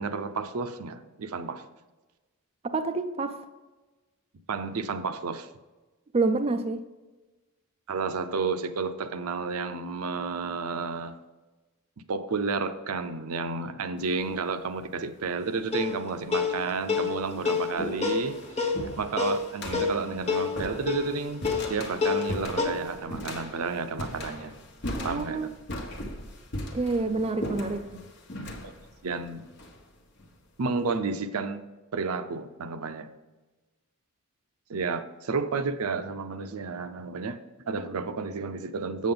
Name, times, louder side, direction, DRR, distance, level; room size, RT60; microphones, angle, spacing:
voice 1, 0.0-1.6 4.5-5.5 7.9-11.2 12.1-18.7 19.0-24.5 25.0-25.5 28.6-28.7 29.0-29.5 30.6-31.6 31.9-33.1 34.7-37.4 37.7-39.1, right 4 dB, 80° right, 11 dB, 0.6 m, -31 dB
voice 2, 2.6-3.4 6.1-6.8 24.9-25.5 26.7-27.9, right 3 dB, 30° right, 8 dB, 0.4 m, -28 dB
sound 1, 14.0-14.4 15.4-15.5 16.3-16.4 16.8-30.3, left 1 dB, 55° left, 1.2 m, -38 dB
sound 2, 15.7-22.7, left 5 dB, 30° left, 1.1 m, -29 dB
7.6 x 7.3 x 3.8 m, 1.2 s
head